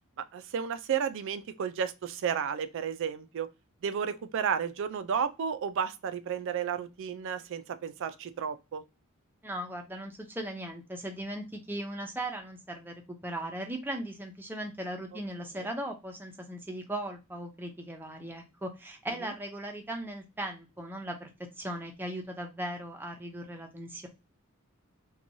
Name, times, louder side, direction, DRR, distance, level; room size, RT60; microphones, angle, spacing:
voice 1, 0.3-3.5 3.8-8.8 15.6-15.7 19.2-19.3, right 7 dB, 60° right, 0.4 m, -32 dB
voice 2, 9.4-21.3 21.6-24.1, right 1 dB, 10° right, 0.5 m, -38 dB
2.9 x 2.2 x 2.6 m
head